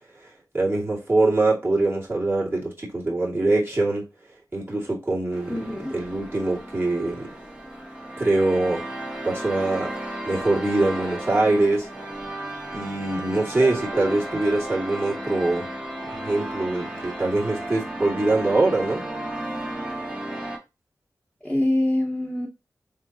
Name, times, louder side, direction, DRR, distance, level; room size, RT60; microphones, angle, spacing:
voice 1, 0.5-4.0 4.5-5.6 5.9-7.3 8.2-8.9 9.2-9.9 10.3-11.9 12.7-15.7 16.2-19.0, right 2 dB, 35° right, 2.3 m, -23 dB
sound 1, 5.3-20.6, right 1 dB, 15° right, 1.4 m, -34 dB
voice 2, 5.5-6.0 13.6-14.4 21.4-22.5, left 1 dB, 5° left, 1.1 m, -26 dB
3.7 x 3.6 x 2.9 m
cardioid pair, 55°, 7 cm